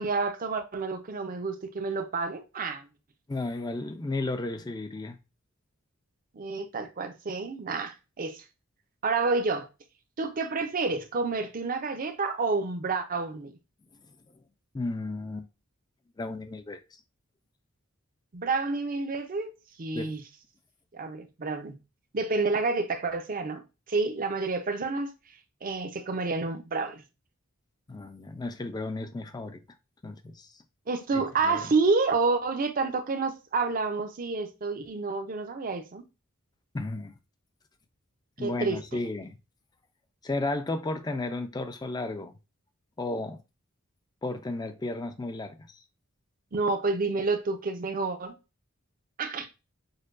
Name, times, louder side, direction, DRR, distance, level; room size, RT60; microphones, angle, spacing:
voice 1, 0.0-2.8 6.3-8.4 9.0-9.7 10.2-13.5 18.3-19.5 19.8-20.2 20.9-21.7 22.1-23.6 23.9-25.1 25.6-27.0 30.9-36.0 38.4-38.8 46.5-48.3 49.2-49.5, right 3 dB, 40° right, 0.5 m, -29 dB
voice 2, 3.3-5.2 14.7-15.5 16.2-16.8 19.9-20.1 27.9-29.6 30.0-30.5 31.1-31.7 36.7-37.1 38.4-39.4 40.2-42.3 43.0-43.4 44.2-45.7, left 2 dB, 20° left, 0.4 m, -33 dB
6.4 x 2.2 x 2.5 m
head